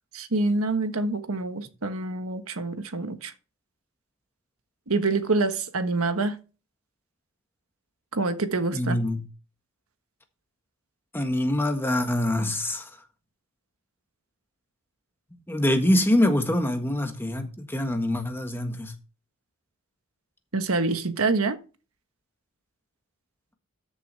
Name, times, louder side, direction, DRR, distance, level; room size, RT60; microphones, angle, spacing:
voice 1, 0.1-3.3 4.9-6.4 8.1-9.0 20.5-21.6, right 3 dB, 85° right, 1.3 m, -26 dB
voice 2, 8.7-9.2 11.1-12.9 15.5-18.9, left 1 dB, 10° left, 1.5 m, -24 dB
13.5 x 7.1 x 3.4 m
head